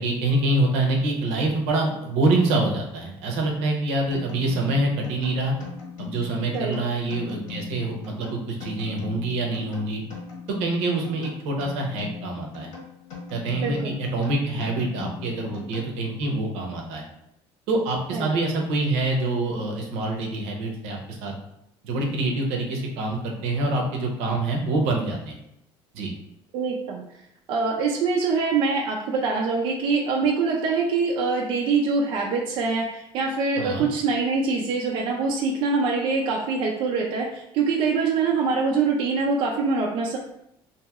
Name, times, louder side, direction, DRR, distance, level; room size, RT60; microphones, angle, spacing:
voice 1, 0.0-5.5 6.0-10.0 10.6-12.7 13.3-17.0 17.7-21.3 21.8-25.3 25.9-26.1 33.6-33.8, right 2 dB, 85° right, 1 dB, 0.7 m, -25 dB
sound 1, 4.1-16.3, left 6 dB, 85° left, 1.4 m, -40 dB
voice 2, 13.6-13.9 18.1-18.3 26.5-27.0 27.5-40.2, right 4 dB, 50° right, 0 dB, 0.4 m, -24 dB
2.9 x 2.7 x 2.4 m, 0.78 s
cardioid pair, 165°, 11 cm